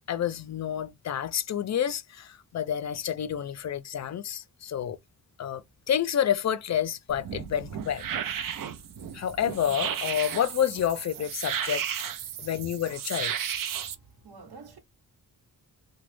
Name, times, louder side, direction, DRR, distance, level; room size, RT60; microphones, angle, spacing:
voice 1, 0.1-5.0 5.4-5.6 5.9-8.0 9.1-11.9 12.4-13.3, left 9 dB, 50° left, 0.4 m, -29 dB
sound 1, 7.1-13.9, right 8 dB, 60° right, 0.5 m, -34 dB
voice 2, 13.8-14.8, right 4 dB, 85° right, 1.0 m, -50 dB
2.9 x 2.2 x 3.1 m
wide cardioid pair, 140°, 37 cm